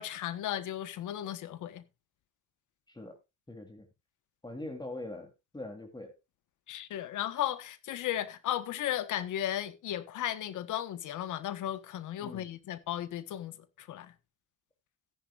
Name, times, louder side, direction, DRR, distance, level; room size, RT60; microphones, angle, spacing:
voice 1, 0.0-1.8 6.7-14.1, left 12 dB, 80° left, 1.4 m, -35 dB
voice 2, 2.9-3.2 3.5-3.9 4.4-6.2 12.2-12.5, left 2 dB, 15° left, 3.4 m, -42 dB
14.5 x 10.5 x 2.5 m
cardioid pair, 90°, 30 cm